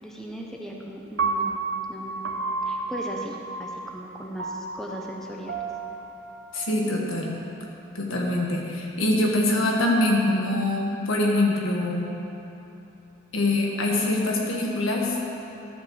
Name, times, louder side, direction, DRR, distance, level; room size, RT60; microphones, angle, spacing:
voice 1, 0.0-1.6 1.9-5.6, equal, ahead, -2 dB, 0.8 m, -38 dB
Piano, 1.2-7.4, right 4 dB, 60° right, 0.7 m, -32 dB
voice 2, 6.5-7.4 7.9-12.2 13.3-15.2, left 1 dB, 75° left, -2 dB, 1.6 m, -24 dB
13.0 x 4.6 x 7.1 m, 2.9 s
head